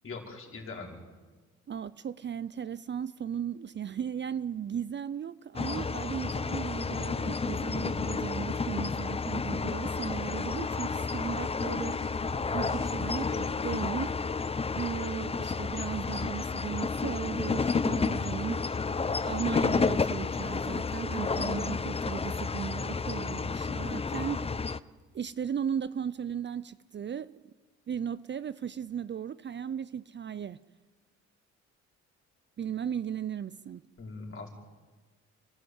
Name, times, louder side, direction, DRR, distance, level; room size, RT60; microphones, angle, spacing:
voice 1, 0.0-1.0 34.0-34.5, left 4 dB, 45° left, 5.3 m, -41 dB
voice 2, 1.7-12.0 12.5-14.2 14.8-18.6 19.2-24.5 25.1-27.3 27.9-30.6 32.6-33.9, right 8 dB, 40° right, 0.6 m, -36 dB
sound 1, 5.5-24.8, left 4 dB, 20° left, 0.7 m, -31 dB
sound 2, 11.9-13.5, right 1 dB, 10° right, 2.3 m, -47 dB
29.5 x 13.0 x 8.2 m
cardioid pair, 90°, 30 cm